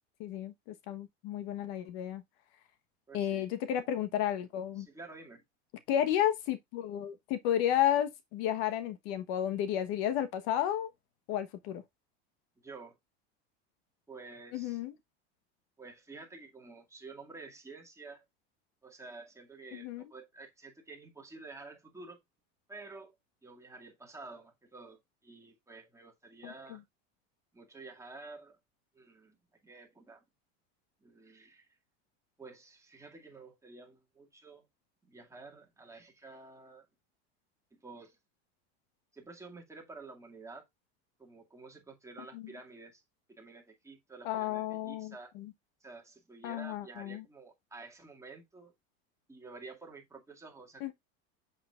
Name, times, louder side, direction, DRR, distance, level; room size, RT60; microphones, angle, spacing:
voice 1, 0.2-0.5 0.9-2.2 3.1-4.9 5.9-10.9 11.3-11.8 14.5-14.9 19.7-20.0 26.4-26.8 42.3-42.4 44.2-45.5 46.4-47.2 50.8-50.9, left 11 dB, 65° left, 1.2 m, -32 dB
voice 2, 3.1-3.5 4.8-5.4 12.6-13.0 14.1-14.8 15.8-18.2 18.8-22.2 22.7-23.1 23.4-26.8 27.5-28.6 28.9-29.4 29.6-30.2 31.0-31.7 32.4-34.7 35.0-36.9 37.7-38.2 39.1-40.7 41.2-43.0 43.3-45.3 45.8-48.7 49.3-50.9, right 3 dB, 10° right, 2.2 m, -50 dB
7.6 x 6.8 x 2.4 m
supercardioid pair, 125°, 31 cm